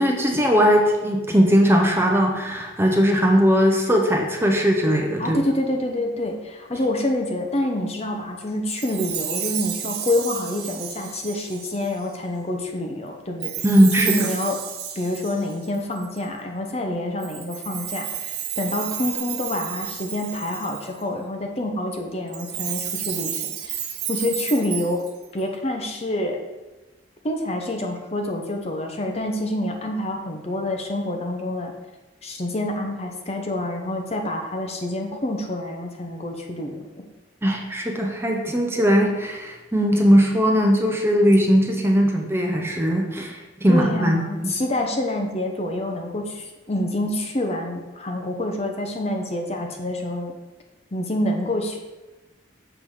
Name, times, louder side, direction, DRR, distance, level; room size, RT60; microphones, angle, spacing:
voice 1, 0.0-5.4 13.6-14.3 37.4-44.5, equal, 10° right, 1 dB, 0.7 m, -19 dB
voice 2, 5.2-13.5 14.0-14.6 15.0-23.8 24.1-25.0 25.3-26.4 27.2-31.7 32.2-36.8 43.7-50.3 50.9-51.8, left 1 dB, 30° left, 3 dB, 0.7 m, -27 dB
Chime, 8.7-12.1 13.4-16.3 17.2-21.0 22.3-25.4, right 9 dB, 55° right, 0.9 m, -31 dB
6.9 x 3.7 x 6.3 m, 1.1 s
head